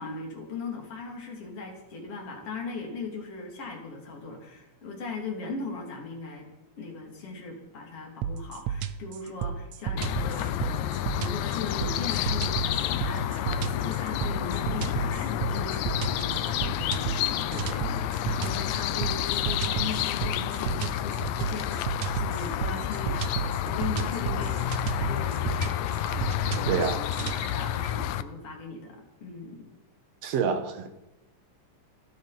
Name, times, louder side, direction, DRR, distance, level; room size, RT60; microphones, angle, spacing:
voice 1, 0.0-6.5 6.8-29.6, left 3 dB, 45° left, 0 dB, 4.0 m, -39 dB
sound 1, 8.2-27.4, right 8 dB, 75° right, 1.9 m, -33 dB
sound 2, 10.0-28.2, left 12 dB, 75° left, 1.9 m, -30 dB
voice 2, 26.7-27.0 30.2-30.9, right 6 dB, 60° right, 8 dB, 2.4 m, -27 dB
30.0 x 10.5 x 4.4 m, 0.96 s
omnidirectional pair, 3.6 m